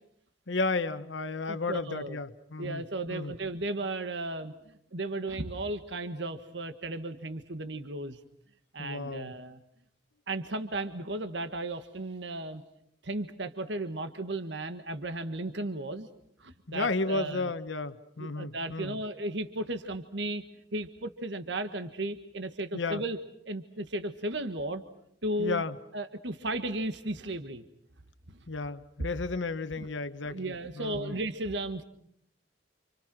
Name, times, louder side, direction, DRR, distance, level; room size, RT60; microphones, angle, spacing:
voice 1, 0.5-2.8 3.1-3.3 8.8-9.3 16.7-19.0 22.7-23.0 25.4-25.7 28.5-31.1, left 3 dB, 80° left, 10 dB, 1.2 m, -33 dB
voice 2, 1.3-2.2 2.6-8.2 8.7-9.6 10.3-12.6 13.0-16.1 16.4-17.5 18.2-20.4 20.7-23.2 23.4-24.8 25.2-25.6 25.9-27.6 28.3-28.4 29.8-29.9 30.2-31.8, right 2 dB, 70° right, 9 dB, 1.6 m, -35 dB
29.5 x 27.5 x 6.2 m, 0.72 s
head